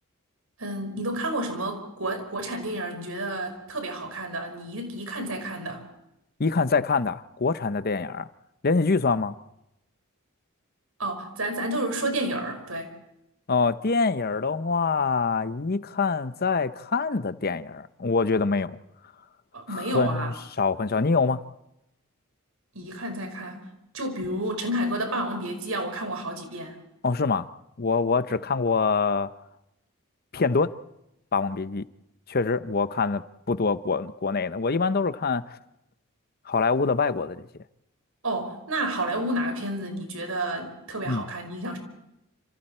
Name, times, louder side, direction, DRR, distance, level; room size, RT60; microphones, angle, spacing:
voice 1, 0.6-5.8 11.0-12.9 19.5-20.3 22.7-23.7 23.9-26.8 38.2-41.8, right 1 dB, 85° right, 5.3 m, -30 dB
voice 2, 6.4-8.3 8.6-9.3 13.5-18.8 19.7-21.4 27.0-27.5 27.8-29.3 30.3-30.8 31.3-31.8 32.3-35.6 36.5-37.5 41.1-41.3, left 4 dB, 45° left, 0.8 m, -25 dB
29.0 x 27.5 x 4.4 m
head